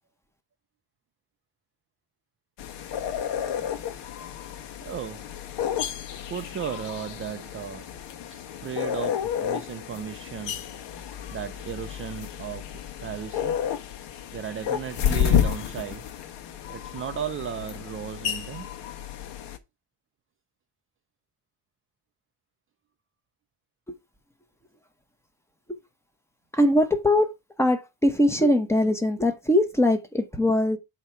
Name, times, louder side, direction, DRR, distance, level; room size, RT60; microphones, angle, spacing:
sound 1, 2.6-19.6, left 9 dB, 75° left, 1.2 m, -31 dB
voice 1, 4.8-5.4 6.3-7.9 8.3-10.7 11.3-13.6 14.3-16.1 16.7-18.7, right 9 dB, 35° right, 0.4 m, -35 dB
voice 2, 26.5-27.3 27.6-30.8, left 1 dB, 5° left, 0.8 m, -22 dB
8.0 x 2.9 x 5.5 m
cardioid pair, 170°, 42 cm